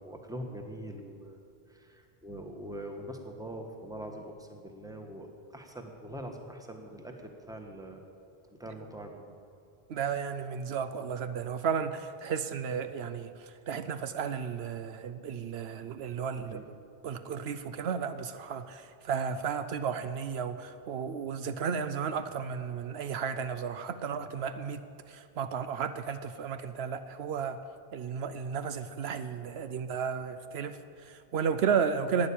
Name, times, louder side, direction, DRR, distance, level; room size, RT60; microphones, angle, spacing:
voice 1, 0.0-1.4 1.7-8.0 8.5-9.3 16.4-16.7, right 1 dB, 5° right, 3 dB, 1.2 m, -43 dB
voice 2, 9.9-16.6 17.0-27.6 27.9-32.3, right 6 dB, 75° right, 11 dB, 0.9 m, -33 dB
12.0 x 9.7 x 8.6 m, 2.5 s
omnidirectional pair, 1.1 m